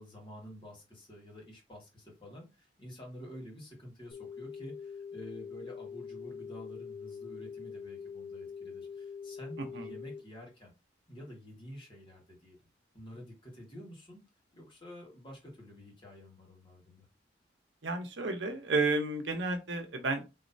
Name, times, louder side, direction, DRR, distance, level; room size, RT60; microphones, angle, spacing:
voice 1, 0.0-10.7 11.1-12.6 12.9-14.2 14.5-17.1, equal, 30° left, 1.7 m, -49 dB
sound 1, 4.1-10.2, left 6 dB, 85° left, 1.4 m, -44 dB
voice 2, 9.6-9.9 17.8-20.2, right 3 dB, 85° right, 0.9 m, -32 dB
4.1 x 3.1 x 2.7 m
head